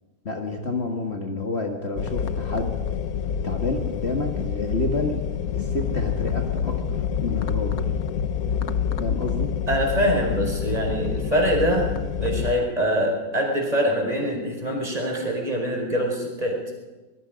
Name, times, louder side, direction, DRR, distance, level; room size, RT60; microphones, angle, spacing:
voice 1, 0.3-2.7 3.4-5.2 5.5-7.9 9.0-9.5, left 2 dB, 45° left, 2 dB, 1.9 m, -29 dB
sound 1, 2.0-12.5, left 7 dB, 70° left, 1.3 m, -27 dB
voice 2, 9.7-11.9 12.2-16.6, equal, 25° right, -1 dB, 5.0 m, -24 dB
25.0 x 20.5 x 5.2 m, 1.2 s
omnidirectional pair, 1.6 m